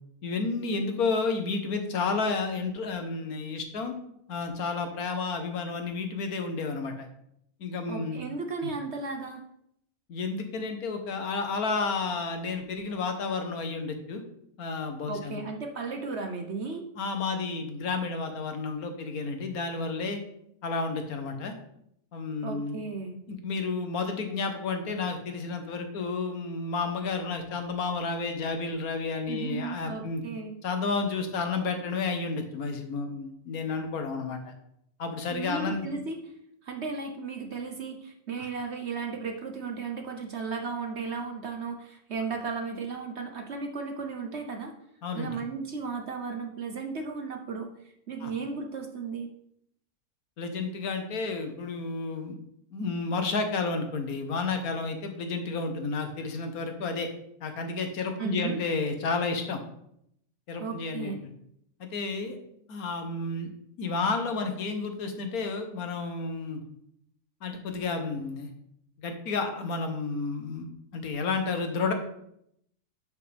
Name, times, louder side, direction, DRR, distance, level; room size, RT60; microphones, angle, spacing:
voice 1, 0.2-3.9 4.3-7.1 7.6-8.2 8.6-8.7 10.1-14.2 14.6-15.4 17.0-20.2 20.6-21.5 22.1-22.8 23.3-30.2 30.6-34.5 35.0-35.9 45.0-45.4 48.2-48.3 50.4-52.4 52.7-57.1 57.4-59.6 60.5-61.3 61.8-62.4 62.7-63.5 63.8-66.6 67.4-68.5 69.0-70.7 70.9-71.9, left 4 dB, 70° left, 6 dB, 1.5 m, -31 dB
voice 2, 7.9-9.4 15.1-16.8 22.4-23.2 29.3-30.6 35.3-36.2 36.6-44.7 45.1-47.7 48.1-49.3 58.2-58.6 60.6-61.2, right 4 dB, 50° right, 4 dB, 1.0 m, -35 dB
11.5 x 5.2 x 3.4 m, 0.74 s
omnidirectional pair, 1.7 m